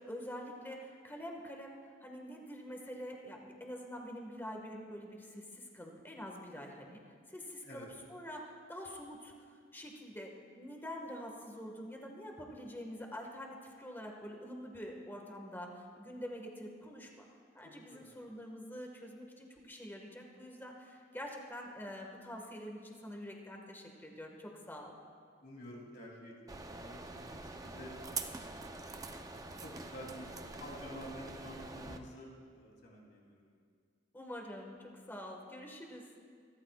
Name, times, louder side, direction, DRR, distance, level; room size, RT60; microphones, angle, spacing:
voice 1, 0.0-7.0 7.3-9.3 9.7-17.2 17.6-25.0 34.1-36.0, equal, 10° left, 1 dB, 1.7 m, -46 dB
voice 2, 17.6-18.1 25.4-28.3 28.5-29.1 29.6-33.5, equal, 60° left, -3 dB, 3.3 m, -50 dB
sound 1, 26.5-32.0, right 3 dB, 20° right, 0.7 m, -45 dB
27.0 x 13.5 x 2.4 m, 2.1 s
head